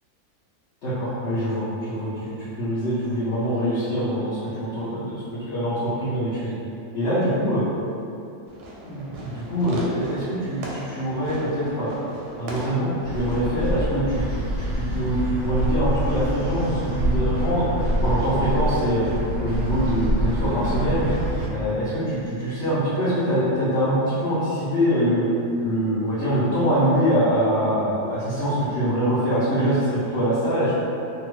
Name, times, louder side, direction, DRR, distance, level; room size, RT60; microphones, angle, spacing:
voice 1, 0.8-2.3 2.6-6.5 6.9-7.6 8.8-12.0 12.4-14.4 14.7-17.7 18.0-19.0 19.4-21.1 21.5-25.3 25.6-30.7, equal, 55° left, -13 dB, 0.9 m, -24 dB
Fireworks, 8.5-13.6, right 1 dB, 85° right, 1.2 m, -37 dB
sound 1, 13.0-21.5, equal, 65° right, 0.6 m, -26 dB
2.8 x 2.6 x 3.1 m, 2.7 s
omnidirectional pair, 1.8 m